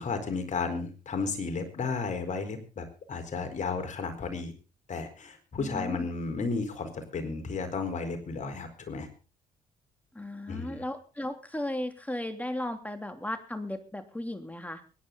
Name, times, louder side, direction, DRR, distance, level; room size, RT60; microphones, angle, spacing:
voice 1, 0.0-4.5 4.9-9.1 10.5-10.8, left 4 dB, 50° left, 6 dB, 4.4 m, -33 dB
voice 2, 5.6-6.1 10.1-14.8, left 1 dB, 10° left, 7 dB, 3.0 m, -35 dB
23.0 x 10.5 x 3.9 m, 0.34 s
hypercardioid pair, 55°, 16 cm